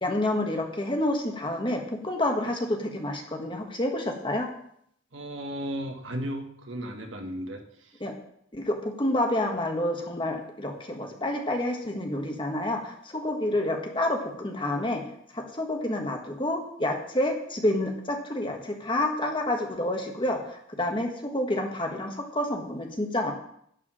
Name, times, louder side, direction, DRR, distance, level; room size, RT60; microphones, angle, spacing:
voice 1, 0.0-4.5 8.0-8.2 8.5-15.0 15.3-23.3, left 1 dB, 25° left, 2 dB, 1.5 m, -29 dB
voice 2, 5.1-8.0, equal, 85° right, 4 dB, 1.5 m, -35 dB
11.5 x 4.8 x 7.5 m, 0.69 s
head